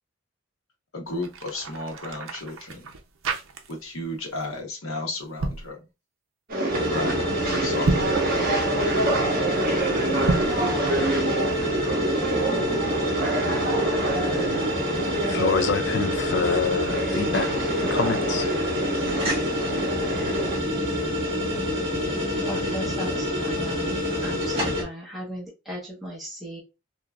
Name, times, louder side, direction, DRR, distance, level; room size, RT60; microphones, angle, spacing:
voice 1, 0.9-2.9 3.7-5.9 6.9-8.2, left 2 dB, 85° left, 1.1 m, -34 dB
sound 1, 1.1-4.0 4.3-4.6 5.2-5.7 7.7-8.2 10.1-10.6, right 2 dB, 80° right, 0.6 m, -30 dB
sound 2, 6.5-20.6, right 2 dB, 45° right, 1.1 m, -27 dB
sound 3, 6.7-24.8, equal, 25° right, 1.3 m, -27 dB
voice 2, 15.2-18.5, left 5 dB, 55° left, 0.4 m, -27 dB
voice 3, 22.4-23.9 24.2-26.6, equal, ahead, 1.0 m, -36 dB
3.7 x 2.9 x 2.3 m
head